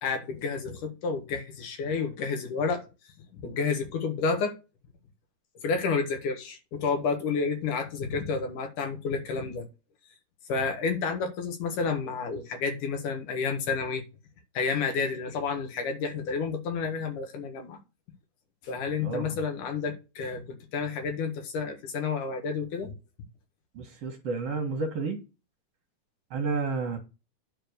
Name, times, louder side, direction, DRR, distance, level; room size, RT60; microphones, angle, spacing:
voice 1, 0.0-2.9 3.3-4.5 5.6-9.6 10.5-14.0 14.5-17.8 18.6-22.9, left 5 dB, 75° left, 3.3 m, -30 dB
voice 2, 19.0-19.4 23.7-25.2 26.3-27.0, right 4 dB, 55° right, 2.3 m, -31 dB
10.0 x 4.3 x 6.7 m
omnidirectional pair, 3.7 m